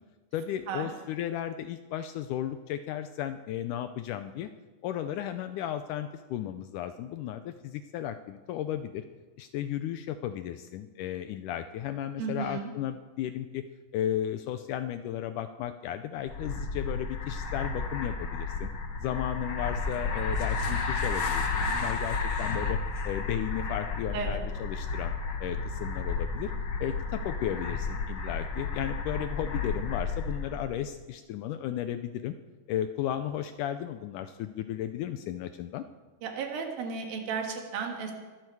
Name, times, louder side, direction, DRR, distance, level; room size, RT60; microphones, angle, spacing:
voice 1, 0.3-4.5 4.8-9.0 9.4-13.7 13.9-18.7 19.0-22.8 23.1-25.1 25.4-26.5 26.8-32.3 32.7-35.8, left 11 dB, 80° left, 10 dB, 1.8 m, -34 dB
voice 2, 12.2-12.7 24.1-24.4 36.2-38.1, right 5 dB, 75° right, 3 dB, 3.6 m, -34 dB
sound 1, 16.3-30.7, left 4 dB, 50° left, 1.7 m, -32 dB
23.5 x 12.5 x 4.7 m, 1.3 s
omnidirectional pair, 4.2 m